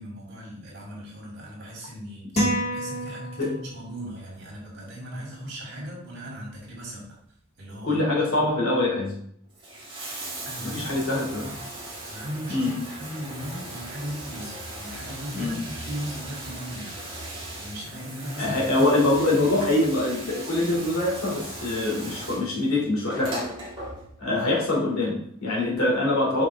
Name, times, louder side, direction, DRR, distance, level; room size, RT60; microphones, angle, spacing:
voice 1, 0.0-2.3 2.7-7.0 7.6-8.0 8.4-8.5 10.4-10.8 11.4-11.5 12.1-16.9 17.6-18.8 19.1-19.4 24.3-24.4, equal, 55° right, -3 dB, 3.2 m, -37 dB
sound 1, 2.4-3.9, equal, 30° left, 2.2 m, -27 dB
voice 2, 7.8-9.2 10.6-11.5 12.5-12.8 15.3-15.7 18.4-23.4 24.2-26.4, left 2 dB, 80° left, -3 dB, 2.8 m, -24 dB
Bathtub (filling or washing), 9.4-24.4 25.5-25.6, right 1 dB, 25° right, 2.3 m, -38 dB
7.0 x 5.8 x 3.6 m, 0.67 s
head